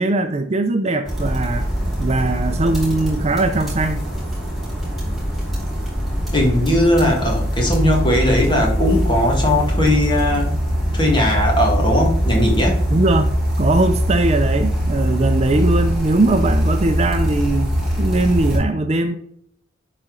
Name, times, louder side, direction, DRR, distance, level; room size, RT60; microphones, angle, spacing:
voice 1, 0.0-1.7 2.0-4.0 12.9-17.7 18.0-19.2, right 2 dB, 30° right, 0.5 m, -20 dB
sound 1, 1.0-18.6, equal, ahead, 3.3 m, -22 dB
voice 2, 6.3-10.5 10.9-12.8, left 1 dB, 25° left, 1.8 m, -18 dB
11.0 x 4.2 x 3.9 m
head